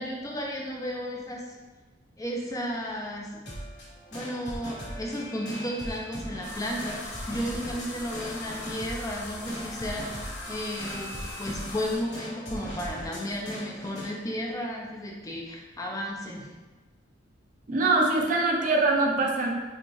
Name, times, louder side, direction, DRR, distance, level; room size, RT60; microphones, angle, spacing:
voice 1, 0.0-1.6 2.2-3.3 4.1-16.5, equal, 20° left, -1 dB, 0.5 m, -33 dB
sound 1, 3.5-14.1, equal, 65° left, 1.4 m, -40 dB
sound 2, 6.4-12.0, left 2 dB, 40° left, 0.9 m, -40 dB
voice 2, 17.7-19.5, right 2 dB, 45° right, 0 dB, 0.6 m, -23 dB
5.1 x 2.4 x 3.1 m, 1.3 s
head